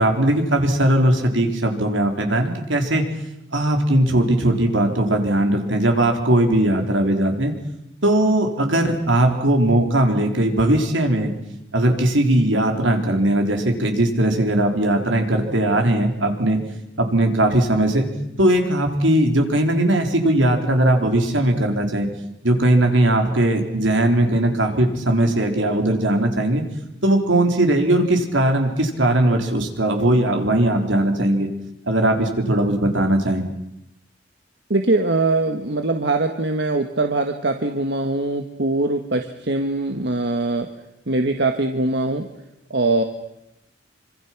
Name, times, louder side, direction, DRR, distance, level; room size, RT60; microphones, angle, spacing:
voice 1, 0.0-3.0 3.5-7.5 8.0-11.3 11.7-16.6 17.0-18.1 18.4-22.1 22.4-26.6 27.0-31.5 31.9-33.4, right 1 dB, 80° right, 4 dB, 4.1 m, -19 dB
voice 2, 34.7-40.7 41.1-42.3 42.7-43.0, right 2 dB, 60° right, 5 dB, 1.5 m, -22 dB
26.5 x 25.5 x 6.1 m, 0.86 s
head